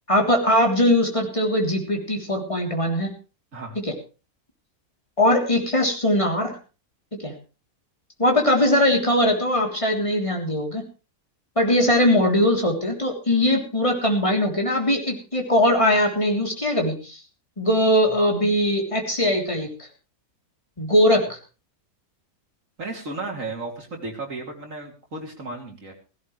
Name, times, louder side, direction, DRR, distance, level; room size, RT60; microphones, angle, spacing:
voice 1, 0.1-3.1 3.7-3.9 5.2-6.6 7.2-7.3 8.2-10.8 11.5-17.2 17.6-19.7 20.8-21.4, left 1 dB, 20° left, 1 dB, 3.5 m, -21 dB
voice 2, 22.8-25.9, right 2 dB, 55° right, 1 dB, 3.9 m, -34 dB
16.5 x 16.5 x 3.3 m, 0.34 s
omnidirectional pair, 1.7 m